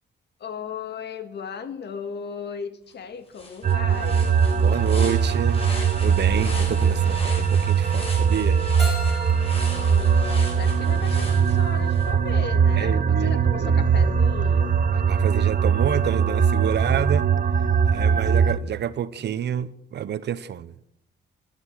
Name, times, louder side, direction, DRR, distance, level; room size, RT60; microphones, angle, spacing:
voice 1, 0.4-4.3 9.6-14.8, left 6 dB, 60° left, 2.0 m, -36 dB
sound 1, 2.9-3.0 3.3-12.1, left 2 dB, 30° left, 6.3 m, -39 dB
sound 2, 3.6-18.6, right 6 dB, 40° right, 1.2 m, -21 dB
voice 2, 4.5-5.6 6.0-8.6 12.8-13.8 15.1-17.3 17.9-20.7, right 9 dB, 60° right, 0.9 m, -29 dB
Keyboard (musical), 8.8-11.6, equal, ahead, 7.0 m, -39 dB
12.5 x 12.5 x 6.5 m
cardioid pair, 90°, 20 cm